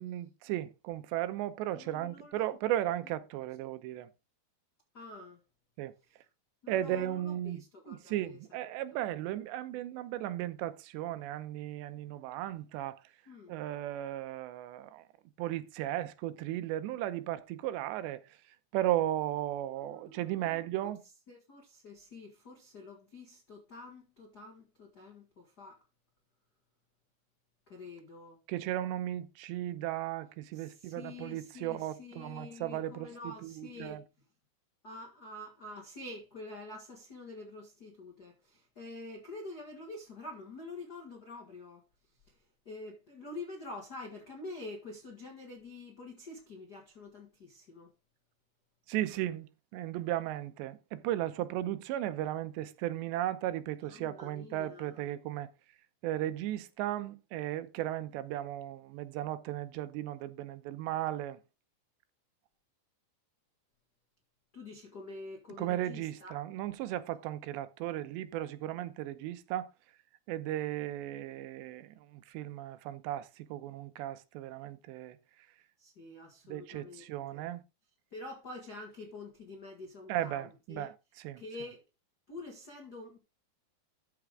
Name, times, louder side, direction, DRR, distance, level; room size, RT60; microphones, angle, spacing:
voice 1, 0.0-4.1 5.8-5.9 6.7-7.6 7.9-13.0 13.5-15.0 15.4-18.2 18.7-21.0 28.5-34.0 48.9-55.5 56.0-61.4 65.6-69.7 70.3-75.2 76.5-77.6 80.1-80.9 81.2-81.4, right 13 dB, 90° right, 3.0 m, -36 dB
voice 2, 1.7-2.6 4.9-5.4 6.6-8.4 8.9-9.0 13.3-13.6 19.8-20.9 21.3-25.8 27.7-28.4 30.5-34.0 34.8-41.8 42.1-47.9 53.8-55.1 64.5-66.3 75.8-77.5 78.1-80.9 81.4-81.8 82.3-83.2, left 2 dB, 65° left, 0.9 m, -47 dB
13.0 x 5.9 x 3.7 m
omnidirectional pair, 5.0 m